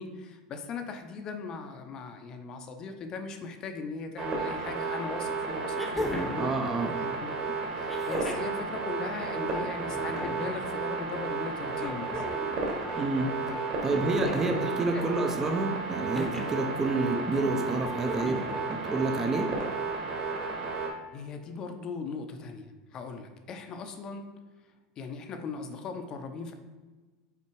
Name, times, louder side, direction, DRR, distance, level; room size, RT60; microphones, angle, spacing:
voice 1, 0.0-6.5 7.0-12.2 14.2-14.6 14.9-15.0 21.1-24.3 25.0-26.5, left 4 dB, 30° left, 6 dB, 0.6 m, -39 dB
sound 1, 4.2-20.9, right 4 dB, 35° right, 1.4 m, -33 dB
sound 2, 4.7-4.8 5.7-6.5 7.9-8.5 9.8-10.5 11.8-12.6 13.9-14.6 16.1-16.6 18.0-18.6 19.9-20.0, left 1 dB, 5° left, 0.8 m, -37 dB
voice 2, 6.4-6.9 13.0-13.3 13.8-19.5, right 2 dB, 20° right, 5 dB, 0.5 m, -29 dB
5.8 x 4.4 x 4.6 m, 1.3 s
supercardioid pair, 155°, 2 cm